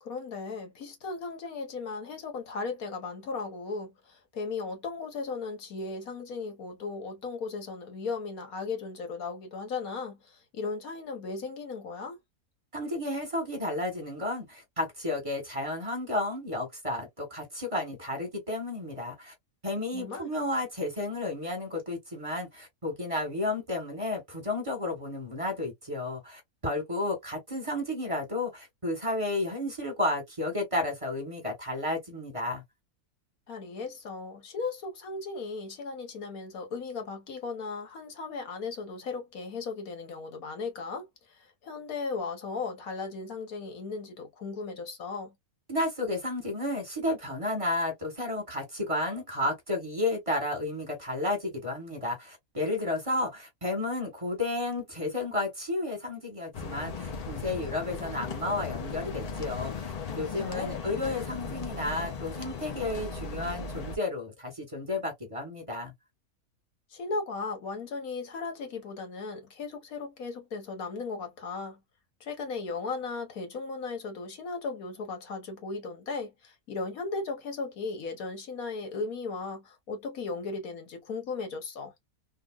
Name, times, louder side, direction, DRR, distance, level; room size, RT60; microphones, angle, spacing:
voice 1, 0.0-12.2 19.9-20.3 33.5-45.3 60.3-60.8 66.9-71.8 72.2-81.9, left 4 dB, 75° left, 1.5 m, -36 dB
voice 2, 12.7-19.3 19.6-32.6 45.7-65.9, left 2 dB, 25° right, 1.5 m, -32 dB
sound 1, 56.5-64.0, left 4 dB, 50° left, 0.4 m, -37 dB
3.6 x 2.2 x 2.3 m
omnidirectional pair, 1.5 m